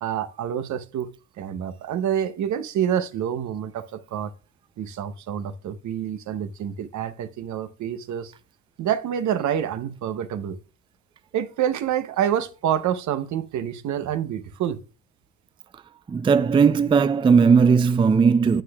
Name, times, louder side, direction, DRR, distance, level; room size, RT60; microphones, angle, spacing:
voice 1, 0.0-1.1 1.4-4.3 4.8-8.3 8.8-10.6 11.3-14.8, right 9 dB, 70° right, 0.8 m, -27 dB
voice 2, 16.1-18.6, right 5 dB, 20° right, 0.3 m, -17 dB
9.0 x 7.8 x 2.3 m
cardioid pair, 90°, 30 cm